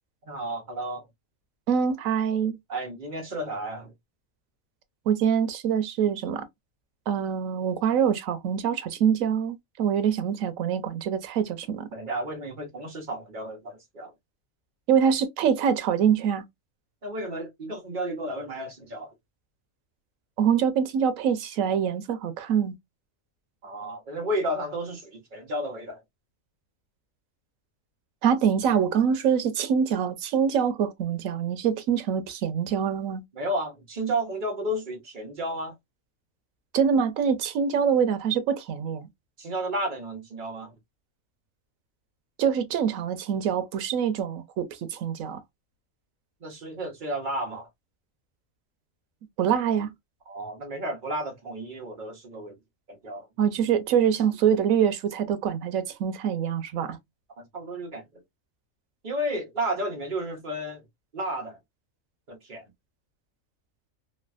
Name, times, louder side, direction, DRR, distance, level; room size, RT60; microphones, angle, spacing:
voice 1, 0.2-1.0 2.7-3.9 11.9-14.1 17.0-19.1 23.6-26.0 33.3-35.7 39.4-40.7 46.4-47.7 50.3-52.6 52.9-53.3 57.4-58.2 59.0-60.8 61.1-61.6 62.3-62.7, right 1 dB, 40° right, 1.0 m, -32 dB
voice 2, 1.7-2.6 5.1-6.4 7.1-11.9 14.9-16.4 20.4-22.7 28.2-33.2 36.7-39.1 42.4-45.4 49.4-49.9 53.4-57.0, right 8 dB, 85° right, 1.0 m, -25 dB
3.2 x 2.2 x 2.4 m
omnidirectional pair, 1.4 m